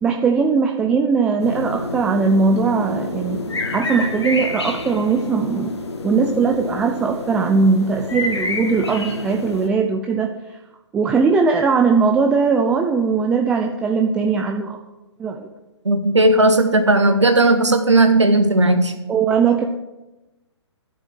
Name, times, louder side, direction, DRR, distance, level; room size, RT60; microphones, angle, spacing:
voice 1, 0.0-3.4 3.7-5.7 6.0-10.3 10.9-14.8 15.2-15.5 19.1-19.6, right 5 dB, 5° right, 3 dB, 0.4 m, -19 dB
sound 1, 1.4-9.7, left 2 dB, 65° left, 2.0 m, -28 dB
voice 2, 15.8-18.9, right 2 dB, 75° right, 7 dB, 1.3 m, -15 dB
12.5 x 6.5 x 7.7 m, 1.0 s
figure-of-eight pair, 130°, 15 cm